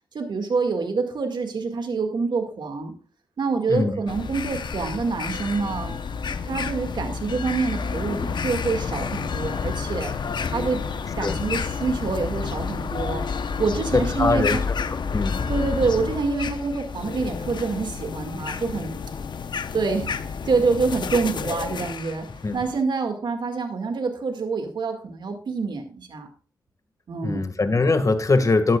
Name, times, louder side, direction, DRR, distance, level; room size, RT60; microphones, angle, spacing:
voice 1, 0.1-2.9 3.4-5.9 6.4-10.1 10.5-10.9 11.2-13.2 13.6-14.6 15.5-19.0 19.7-22.3 22.5-26.3 27.1-27.4, right 4 dB, 80° right, 4 dB, 2.1 m, -26 dB
sound 1, 4.1-22.8, left 5 dB, 75° left, 0.9 m, -30 dB
voice 2, 13.9-14.8 15.1-15.5 22.4-22.6 27.2-28.8, left 3 dB, 45° left, 8 dB, 1.9 m, -22 dB
13.5 x 11.5 x 2.4 m, 0.39 s
cardioid pair, 60°, 8 cm